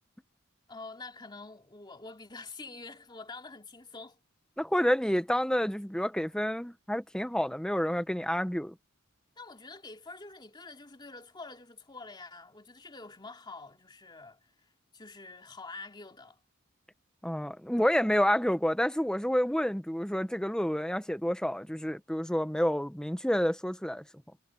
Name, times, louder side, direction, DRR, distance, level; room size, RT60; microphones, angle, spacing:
voice 1, 0.7-4.2 9.4-16.4, left 3 dB, 20° left, 2.7 m, -47 dB
voice 2, 4.6-8.7 17.2-24.0, equal, 5° left, 0.9 m, -29 dB
head